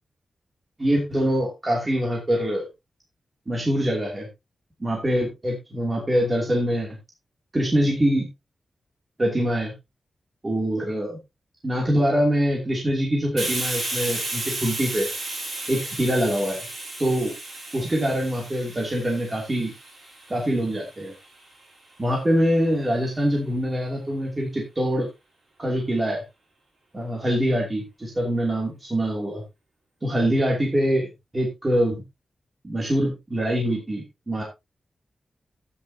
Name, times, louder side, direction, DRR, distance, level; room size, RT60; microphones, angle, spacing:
voice 1, 0.8-2.7 3.5-4.3 4.8-7.0 7.5-8.3 9.2-9.7 10.4-11.2 11.6-15.1 15.7-16.7 17.0-17.3 17.7-19.7 20.3-21.1 22.0-25.1 25.6-26.2 26.9-29.4 30.0-32.0 32.6-34.4, equal, 20° right, -1 dB, 2.7 m, -24 dB
Hiss, 13.4-20.8, right 2 dB, 50° right, 6.4 m, -33 dB
13.0 x 9.5 x 2.8 m, 0.23 s
wide cardioid pair, 170°, 0 cm